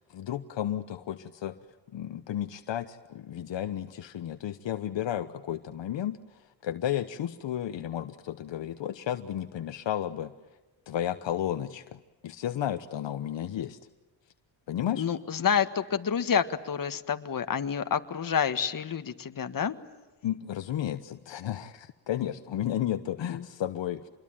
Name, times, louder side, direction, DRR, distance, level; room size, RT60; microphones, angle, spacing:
voice 1, 0.1-1.5 1.9-10.3 10.9-13.8 14.7-15.1 20.2-24.0, left 11 dB, 70° left, 10 dB, 1.2 m, -33 dB
voice 2, 14.9-19.7 23.3-23.4, left 7 dB, 45° left, 9 dB, 1.7 m, -28 dB
27.0 x 21.5 x 9.0 m, 1.2 s
cardioid pair, 90°, 46 cm